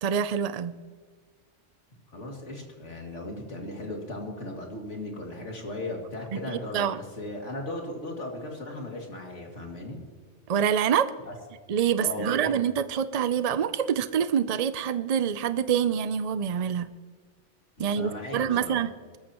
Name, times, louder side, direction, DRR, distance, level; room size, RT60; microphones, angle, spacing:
voice 1, 0.0-0.8 6.3-7.0 10.5-11.1 11.7-16.9 17.8-19.2, right 8 dB, 55° right, 13 dB, 0.4 m, -26 dB
voice 2, 2.1-6.9 7.2-10.0 11.3-11.4 12.0-12.5 17.8-18.8, left 1 dB, 75° left, 0 dB, 2.8 m, -37 dB
21.0 x 14.0 x 3.0 m, 1.5 s
omnidirectional pair, 1.2 m